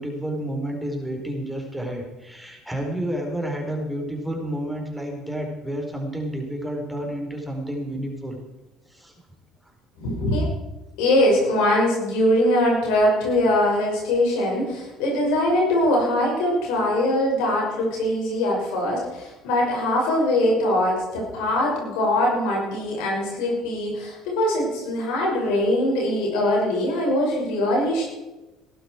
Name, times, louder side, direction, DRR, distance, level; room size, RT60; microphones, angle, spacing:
voice 1, 0.0-8.4 8.9-9.1, right 1 dB, 5° right, 1 dB, 4.5 m, -30 dB
voice 2, 10.0-10.4 11.0-28.0, left 1 dB, 75° left, -2 dB, 5.9 m, -22 dB
18.5 x 12.5 x 4.6 m, 1.1 s
hypercardioid pair, 65°, 0 cm